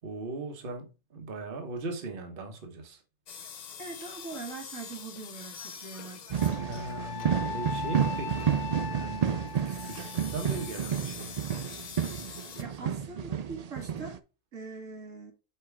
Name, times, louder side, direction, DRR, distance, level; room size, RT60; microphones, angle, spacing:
voice 1, 0.0-3.0 6.6-8.6 8.9-11.4 12.8-13.1, right 3 dB, 45° right, 1.3 m, -39 dB
sound 1, 3.3-12.6, left 7 dB, 50° left, 0.5 m, -45 dB
voice 2, 3.8-6.5 12.6-14.2 14.5-15.3, right 4 dB, 85° right, 2.1 m, -42 dB
sound 2, 6.3-14.2, right 8 dB, 60° right, 0.4 m, -31 dB
Wind instrument woodwind instrument, 6.4-10.7, left 7 dB, 70° left, 0.8 m, -39 dB
5.7 x 4.7 x 4.6 m
omnidirectional pair, 1.3 m